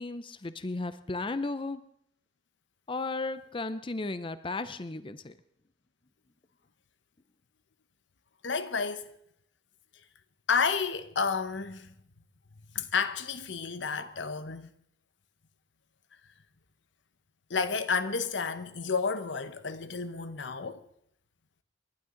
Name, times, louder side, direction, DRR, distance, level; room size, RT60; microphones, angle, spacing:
voice 1, 0.0-1.8 2.9-5.4, left 3 dB, 30° left, 0.6 m, -35 dB
voice 2, 8.4-9.2 10.5-11.9 12.7-14.7 17.5-20.8, left 5 dB, 85° left, 1.0 m, -31 dB
29.5 x 11.5 x 3.9 m
head